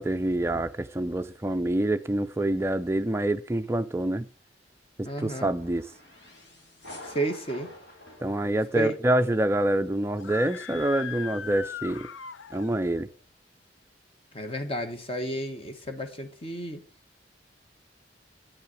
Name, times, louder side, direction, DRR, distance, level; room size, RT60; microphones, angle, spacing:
voice 1, 0.0-4.3 5.0-5.9 8.2-12.1 12.5-13.1, right 1 dB, 15° right, 0.4 m, -26 dB
voice 2, 5.0-5.5 7.0-7.7 8.7-9.0 14.3-16.8, right 1 dB, 30° left, 1.3 m, -32 dB
sound 1, 5.2-9.3, left 1 dB, 70° left, 2.9 m, -48 dB
Screaming, 10.1-12.9, left 8 dB, 90° left, 0.5 m, -39 dB
8.9 x 5.7 x 6.0 m
head